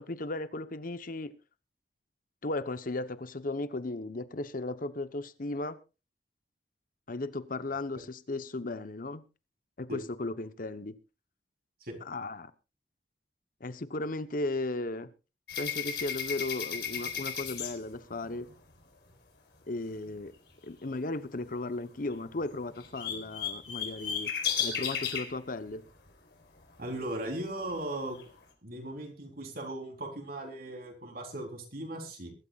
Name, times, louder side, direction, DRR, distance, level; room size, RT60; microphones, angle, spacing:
voice 1, 0.0-1.3 2.4-5.8 7.1-9.2 9.8-11.0 12.0-12.5 13.6-15.1 15.6-18.5 19.7-20.3 20.6-24.3 24.6-25.8, left 2 dB, 50° left, 1.0 m, -36 dB
sound 1, 15.5-18.5 22.1-22.2 22.4-25.3 27.0-27.1 27.6-28.2, left 7 dB, 65° left, 4.6 m, -34 dB
voice 2, 26.8-28.2 28.6-32.3, right 1 dB, 55° right, 3.9 m, -38 dB
23.0 x 13.0 x 2.5 m
head